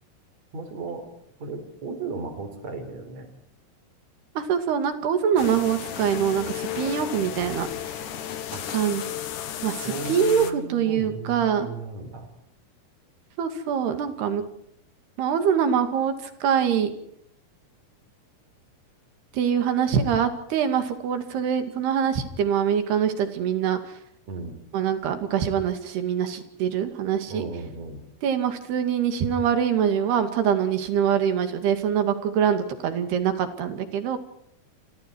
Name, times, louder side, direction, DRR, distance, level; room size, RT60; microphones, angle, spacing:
voice 1, 0.5-1.1 1.4-3.3 8.5-8.7 9.9-12.3 24.3-24.6 27.3-28.0, right 3 dB, 45° right, 8 dB, 5.2 m, -35 dB
voice 2, 4.4-7.9 8.7-9.0 9.6-11.7 13.4-14.4 15.2-16.9 19.3-23.8 24.7-27.5 28.2-34.2, right 8 dB, 85° right, 8 dB, 4.4 m, -24 dB
sound 1, 5.4-10.5, left 10 dB, 60° left, 2.7 m, -34 dB
29.0 x 25.5 x 4.7 m, 0.72 s
omnidirectional pair, 4.5 m